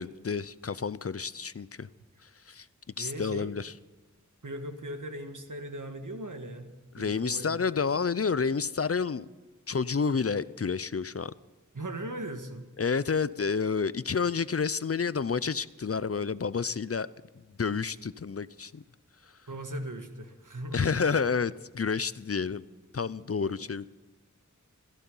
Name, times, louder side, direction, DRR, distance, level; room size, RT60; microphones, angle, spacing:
voice 1, 0.0-1.9 2.5-2.7 3.0-3.7 7.0-9.3 9.7-11.3 12.8-17.1 17.6-18.8 20.7-22.6 22.9-23.9, left 5 dB, 50° left, 18 dB, 0.5 m, -29 dB
voice 2, 3.0-3.5 4.4-7.6 11.7-12.7 19.5-20.9 23.5-23.6, right 1 dB, 80° right, 6 dB, 1.7 m, -39 dB
16.5 x 14.0 x 5.5 m, 1.3 s
wide cardioid pair, 45°, 31 cm